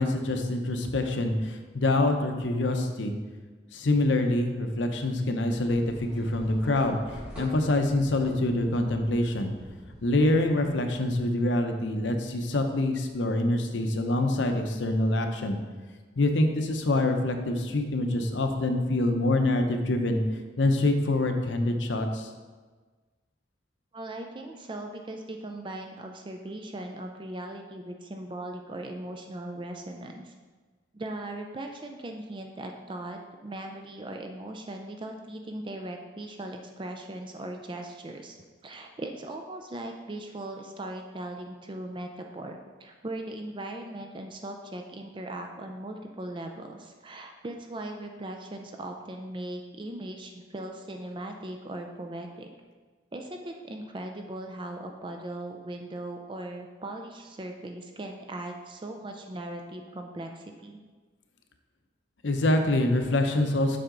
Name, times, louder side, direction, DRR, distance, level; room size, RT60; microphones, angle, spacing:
voice 1, 0.0-3.1 3.7-7.0 7.3-9.5 10.0-15.6 16.2-20.2 20.6-22.3 62.2-63.8, left 2 dB, 80° left, 5 dB, 0.8 m, -25 dB
sound 1, 5.5-11.2, equal, 5° right, 2.1 m, -46 dB
voice 2, 23.9-30.3 30.9-38.4 38.6-52.5 53.1-60.8, right 1 dB, 25° right, 4 dB, 0.4 m, -39 dB
7.6 x 5.6 x 3.8 m, 1.4 s
head